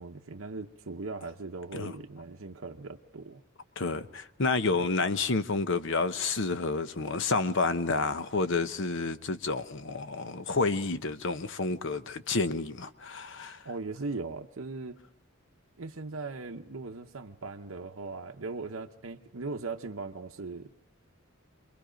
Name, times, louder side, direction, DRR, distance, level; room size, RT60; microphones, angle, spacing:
voice 1, 0.0-3.4 4.6-4.7 13.6-15.0 15.8-20.7, right 3 dB, 65° right, 0.9 m, -39 dB
voice 2, 3.8-13.6, left 3 dB, 60° left, 1.0 m, -30 dB
28.5 x 22.0 x 5.1 m
head